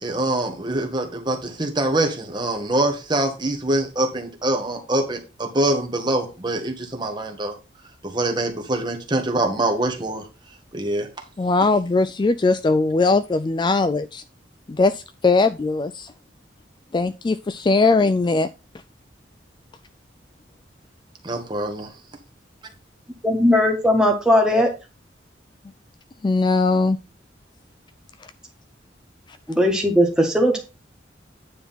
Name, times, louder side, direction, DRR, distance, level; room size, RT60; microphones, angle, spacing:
voice 1, 0.0-7.5 8.0-10.2 10.7-11.1 21.2-21.9, right 1 dB, 25° right, 3 dB, 1.5 m, -24 dB
voice 2, 11.4-14.2 14.7-16.1 16.9-18.5 26.2-27.0, left 3 dB, 25° left, 12 dB, 0.3 m, -20 dB
voice 3, 23.2-24.7 29.5-30.6, equal, 5° right, 1 dB, 1.7 m, -18 dB
9.4 x 3.7 x 5.7 m, 0.29 s
head